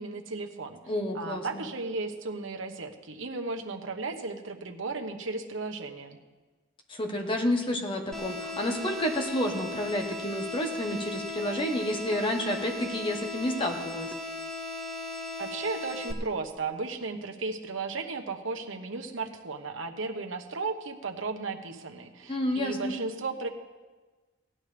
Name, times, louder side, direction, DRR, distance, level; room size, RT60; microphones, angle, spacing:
voice 1, 0.0-0.8 1.1-6.2 15.4-23.5, right 3 dB, 90° right, 4 dB, 1.1 m, -35 dB
voice 2, 0.9-1.6 6.9-14.1 22.3-22.9, left 1 dB, 25° left, 3 dB, 1.3 m, -30 dB
sound 1, 8.1-16.1, left 2 dB, 5° left, 0.8 m, -37 dB
17.0 x 11.5 x 3.4 m, 1.3 s
head